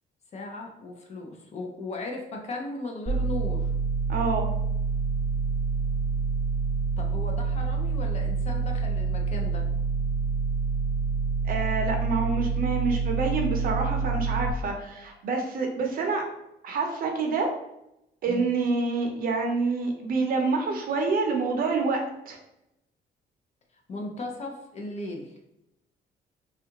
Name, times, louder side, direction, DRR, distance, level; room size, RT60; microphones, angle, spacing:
voice 1, 0.3-3.7 7.0-9.7 18.3-18.5 23.9-25.4, left 2 dB, 40° left, 1 dB, 0.5 m, -37 dB
sound 1, 3.1-14.5, right 5 dB, 15° left, 1.2 m, -27 dB
voice 2, 4.1-4.5 11.4-16.2 16.6-17.5 18.2-22.0 22.3-22.4, right 4 dB, 55° right, 2 dB, 0.6 m, -27 dB
3.4 x 2.4 x 2.9 m, 0.85 s
cardioid pair, 175°, 18 cm